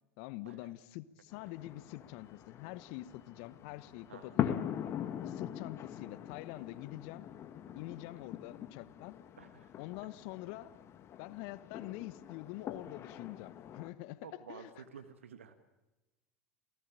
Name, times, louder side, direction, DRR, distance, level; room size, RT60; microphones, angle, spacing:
voice 1, 0.2-4.6 5.2-7.3 7.7-9.2 9.8-10.7 11.2-14.7, left 17 dB, 60° left, 17 dB, 1.1 m, -45 dB
sound 1, 1.3-13.9, left 10 dB, 40° left, 1.7 m, -42 dB
voice 2, 9.4-9.8 14.2-15.5, right 7 dB, 80° right, 9 dB, 1.5 m, -52 dB
29.0 x 18.0 x 8.9 m, 1.1 s
hypercardioid pair, 80°, 7 cm